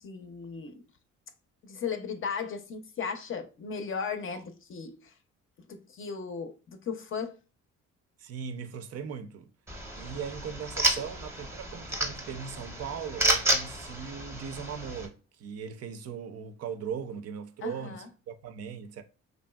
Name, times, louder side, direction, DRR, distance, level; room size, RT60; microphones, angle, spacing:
voice 1, 0.0-0.8 1.6-5.1 5.7-7.4 11.0-11.1 17.6-18.1, left 6 dB, 45° left, 0.5 m, -36 dB
voice 2, 8.2-9.5 10.0-19.0, right 7 dB, 55° right, 0.4 m, -39 dB
sound 1, 9.7-15.1, right 1 dB, 10° right, 0.7 m, -31 dB
3.1 x 2.6 x 2.2 m
cardioid pair, 90°, 30 cm